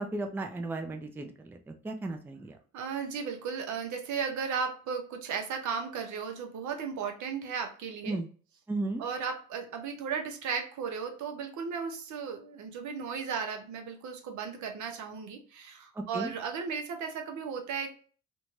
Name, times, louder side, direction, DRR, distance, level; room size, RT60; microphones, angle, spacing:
voice 1, 0.0-2.5 8.0-8.3 8.7-9.0 16.0-16.3, right 2 dB, 5° right, 5 dB, 0.3 m, -35 dB
voice 2, 2.7-8.2 9.0-17.9, right 6 dB, 70° right, 4 dB, 0.7 m, -35 dB
2.6 x 2.2 x 3.0 m, 0.41 s
cardioid pair, 90°, 30 cm